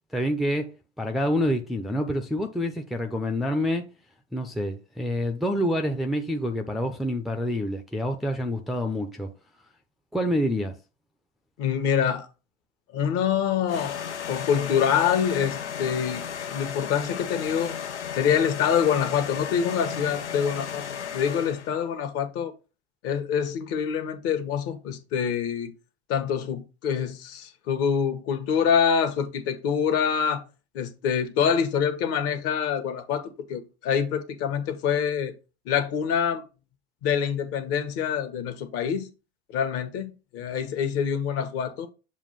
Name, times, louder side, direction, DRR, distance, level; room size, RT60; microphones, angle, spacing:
voice 1, 0.1-0.7 1.0-3.9 4.3-9.3 10.1-10.8, equal, ahead, 0.5 m, -27 dB
voice 2, 11.6-12.3 12.9-14.0 14.3-17.8 18.1-20.9 21.1-22.5 23.0-25.7 26.1-30.4 30.7-33.2 33.5-35.3 35.6-36.4 37.0-39.1 39.5-41.9, left 7 dB, 45° left, 1.3 m, -25 dB
sound 1, 13.7-21.8, left 8 dB, 90° left, 0.7 m, -34 dB
7.2 x 2.5 x 5.5 m
hypercardioid pair, 95°, 34 cm